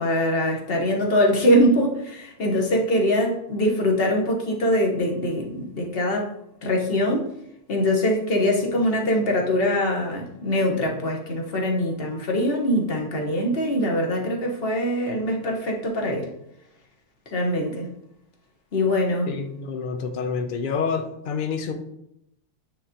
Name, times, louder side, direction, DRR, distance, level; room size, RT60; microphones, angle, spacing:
voice 1, 0.0-6.3 6.6-7.3 7.7-16.3 17.3-17.9 18.7-19.3, equal, 45° left, 0 dB, 1.1 m, -23 dB
voice 2, 19.3-21.7, left 5 dB, 80° left, 5 dB, 0.4 m, -28 dB
9.2 x 3.6 x 2.8 m, 0.79 s
omnidirectional pair, 1.6 m